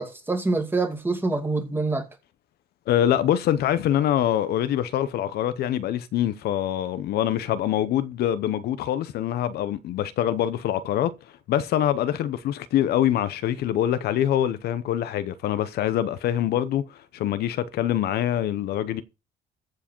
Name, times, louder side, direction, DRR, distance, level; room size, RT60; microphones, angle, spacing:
voice 1, 0.0-2.1, right 3 dB, 15° right, 2.4 m, -26 dB
voice 2, 2.9-11.1 11.5-19.0, left 11 dB, 70° left, 0.8 m, -24 dB
14.5 x 4.8 x 4.4 m
cardioid pair, 110°, 17 cm